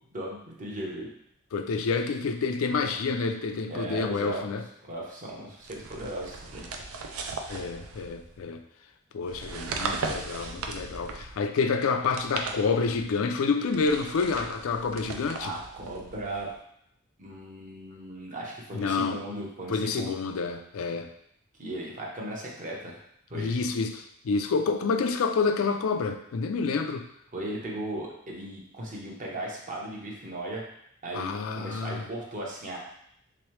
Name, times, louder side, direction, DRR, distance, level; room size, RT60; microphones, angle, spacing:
voice 1, 0.1-1.1 3.7-4.4 4.9-6.7 15.4-16.5 17.2-20.1 21.6-23.0 23.3-23.6 27.3-30.6 31.0-32.8, right 1 dB, 40° right, -3 dB, 0.9 m, -37 dB
voice 2, 1.5-4.6 7.5-8.6 9.1-15.5 18.7-19.2 19.7-21.1 23.3-27.1 31.1-32.1, left 4 dB, 75° left, 6 dB, 0.4 m, -28 dB
sound 1, 5.6-8.4 9.2-11.4 12.0-13.1 13.7-16.5, right 4 dB, 80° right, 0.5 m, -37 dB
3.5 x 3.0 x 3.1 m, 0.73 s
head